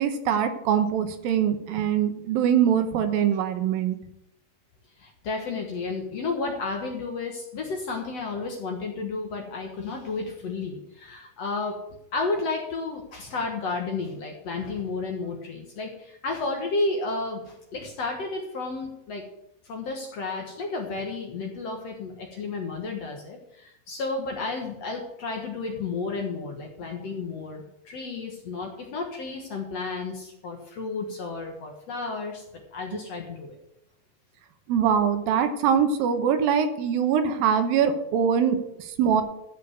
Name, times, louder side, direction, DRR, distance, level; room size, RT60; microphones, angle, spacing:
voice 1, 0.0-4.0 34.7-39.2, right 8 dB, 75° right, 8 dB, 2.7 m, -23 dB
voice 2, 5.0-11.8 12.1-19.2 19.7-32.4 32.7-33.6, left 3 dB, 55° left, 2 dB, 2.0 m, -32 dB
14.0 x 5.2 x 7.9 m, 0.82 s
omnidirectional pair, 4.3 m